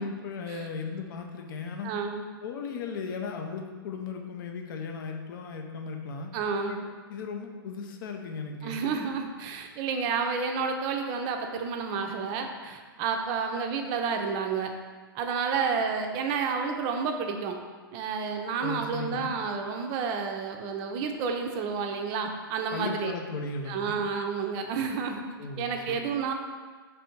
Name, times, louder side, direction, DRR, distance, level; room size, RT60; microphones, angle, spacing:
voice 1, 0.0-1.9 2.4-6.3 6.7-6.8 7.1-8.8 18.6-19.3 22.7-24.0 25.4-26.0, left 4 dB, 60° left, 3 dB, 0.5 m, -36 dB
voice 2, 1.8-2.3 6.3-6.8 8.6-14.7 15.1-17.5 17.9-23.1 23.7-25.2 25.6-26.3, right 5 dB, 35° right, 4 dB, 0.5 m, -30 dB
3.3 x 2.6 x 4.4 m, 1.5 s
hypercardioid pair, 125°, 12 cm